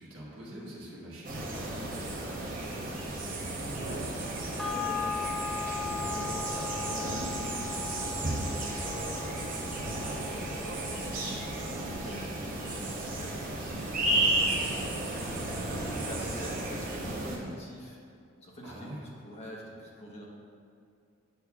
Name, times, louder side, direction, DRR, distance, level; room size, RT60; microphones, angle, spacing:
voice 1, 0.0-1.7 18.6-19.0, right 1 dB, 65° right, -7 dB, 1.4 m, -44 dB
sound 1, 1.2-17.4, right 2 dB, 40° right, 0.8 m, -33 dB
voice 2, 2.1-18.0 18.4-20.2, equal, 30° left, -4 dB, 1.0 m, -45 dB
sound 2, 4.6-13.3 13.7-13.8, left 6 dB, ahead, 0.3 m, -39 dB
7.9 x 6.3 x 2.4 m, 2.5 s
head